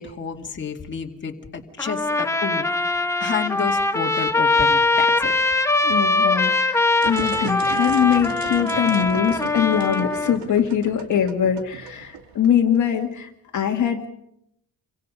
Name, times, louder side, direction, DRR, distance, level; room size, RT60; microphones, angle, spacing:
voice 1, 0.0-5.3, left 6 dB, 25° left, 1 dB, 2.3 m, -30 dB
Trumpet, 1.8-10.4, left 3 dB, 5° left, 0.8 m, -21 dB
voice 2, 5.8-14.1, left 8 dB, 45° left, 2 dB, 2.0 m, -22 dB
Ruler creak., 6.9-12.8, right 6 dB, 75° right, 2.7 m, -36 dB
29.0 x 24.5 x 5.4 m, 0.76 s
cardioid pair, 170°, 41 cm